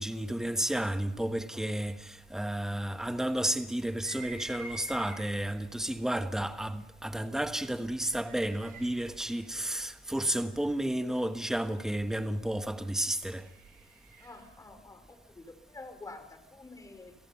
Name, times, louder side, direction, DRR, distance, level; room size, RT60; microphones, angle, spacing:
voice 1, 0.0-13.5, right 1 dB, 5° right, 1.3 m, -32 dB
sound 1, 3.9-5.6 6.4-6.5 7.8-10.7 12.8-14.5, right 2 dB, 60° right, 5.2 m, -48 dB
voice 2, 14.2-17.1, left 3 dB, 20° left, 4.6 m, -48 dB
29.0 x 17.5 x 5.7 m
cardioid pair, 110°, 17 cm